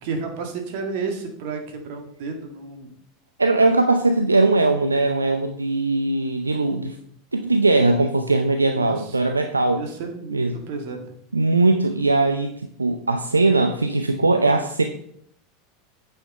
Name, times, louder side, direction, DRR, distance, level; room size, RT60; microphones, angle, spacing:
voice 1, 0.0-2.9 8.8-9.0 9.7-10.4 10.7-11.0, right 4 dB, 55° right, 4 dB, 2.1 m, -31 dB
voice 2, 3.4-7.0 7.3-9.8 10.3-10.6 11.3-12.5 12.8-14.8, right 2 dB, 85° right, 6 dB, 0.6 m, -20 dB
9.0 x 5.8 x 5.4 m, 0.66 s
figure-of-eight pair, 80°, 0 cm